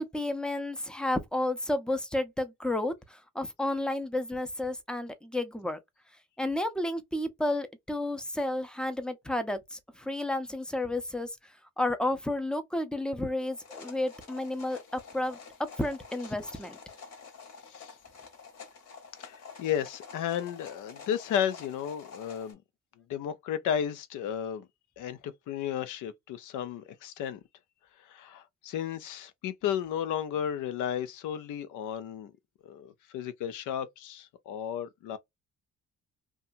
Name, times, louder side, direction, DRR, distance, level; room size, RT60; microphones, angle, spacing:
voice 1, 0.0-5.8 6.4-16.8, left 1 dB, 5° left, 0.5 m, -32 dB
sound 1, 13.5-22.5, left 5 dB, 55° left, 1.1 m, -49 dB
voice 2, 19.2-22.6 23.1-24.7 25.0-27.4 28.1-32.3 32.6-35.2, left 9 dB, 85° left, 0.5 m, -33 dB
2.7 x 2.3 x 2.5 m
cardioid pair, 90°, 30 cm